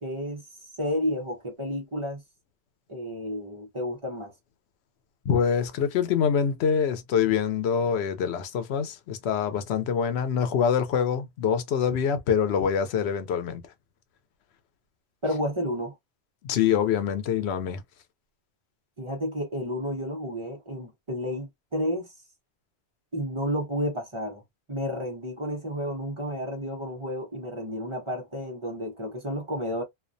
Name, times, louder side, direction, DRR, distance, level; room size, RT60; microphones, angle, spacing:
voice 1, 0.0-2.2 2.9-4.3 15.2-16.0 19.0-22.1 23.1-24.4 24.7-29.8, equal, 35° right, 0.7 m, -31 dB
voice 2, 5.3-13.6 16.4-17.8, left 7 dB, 90° left, 0.8 m, -25 dB
2.3 x 2.1 x 2.5 m
omnidirectional pair, 1.1 m